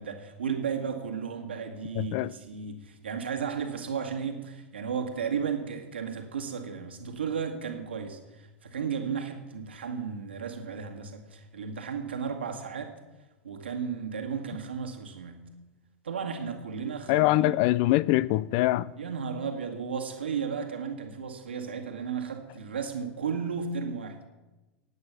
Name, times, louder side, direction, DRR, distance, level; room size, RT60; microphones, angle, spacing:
voice 1, 0.0-13.0 13.4-15.5 16.0-17.6 19.0-24.3, right 6 dB, 80° right, 1.8 m, -34 dB
voice 2, 2.0-2.3 17.1-18.9, left 17 dB, 50° left, 0.5 m, -23 dB
16.5 x 9.4 x 6.0 m
figure-of-eight pair, 90°, 6 cm